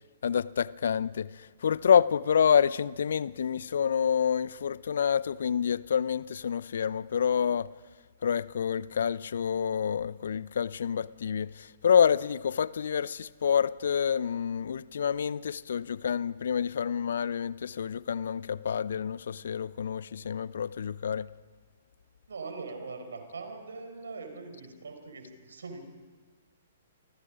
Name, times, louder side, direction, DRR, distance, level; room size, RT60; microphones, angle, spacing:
voice 1, 0.2-7.7 8.2-21.3, left 7 dB, 60° left, 0.6 m, -28 dB
voice 2, 22.3-25.8, right 4 dB, 70° right, 4.8 m, -41 dB
29.0 x 24.5 x 5.2 m
figure-of-eight pair, 115°, 0 cm